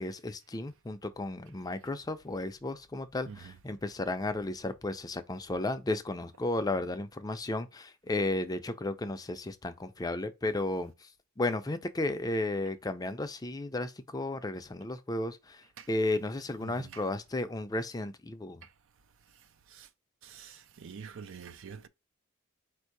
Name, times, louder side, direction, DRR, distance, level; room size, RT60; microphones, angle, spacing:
voice 1, 0.0-11.1 11.4-18.6, left 2 dB, 20° left, 0.5 m, -34 dB
voice 2, 3.3-3.6 15.8-15.9 16.6-17.0 19.7-19.9 20.2-21.9, right 6 dB, 65° right, 0.5 m, -46 dB
4.4 x 2.7 x 4.5 m
head